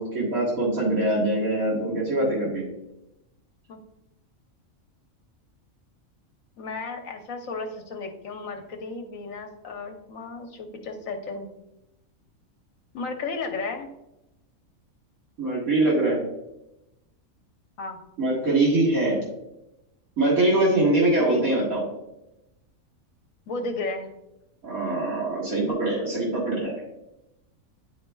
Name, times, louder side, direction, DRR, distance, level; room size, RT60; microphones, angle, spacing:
voice 1, 0.0-2.7 15.4-16.2 18.2-19.2 20.2-21.8 24.6-26.8, right 2 dB, 80° right, -5 dB, 2.1 m, -23 dB
voice 2, 6.6-11.5 12.9-13.9 17.8-18.0 21.2-21.4 23.5-24.1, left 3 dB, 75° left, 4 dB, 1.2 m, -34 dB
9.8 x 4.4 x 2.3 m, 0.90 s
omnidirectional pair, 1.4 m